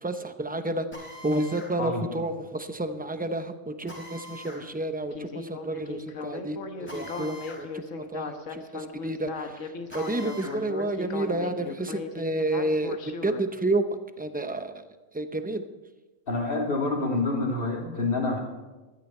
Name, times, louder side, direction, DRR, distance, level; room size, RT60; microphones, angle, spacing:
voice 1, 0.0-0.9 1.2-7.8 8.1-13.0 13.2-13.8 14.2-14.7 15.1-15.6, right 2 dB, 10° right, 8 dB, 0.6 m, -30 dB
Drill, 0.9-1.7 3.9-4.6 6.9-7.6 8.0-8.1 9.9-10.6, left 1 dB, 10° left, 5.5 m, -43 dB
Speech synthesizer, 5.1-13.4, left 4 dB, 85° left, 1.5 m, -37 dB
voice 2, 16.3-18.4, left 2 dB, 45° left, 0 dB, 2.8 m, -27 dB
15.0 x 13.0 x 4.4 m, 1.2 s
omnidirectional pair, 1.3 m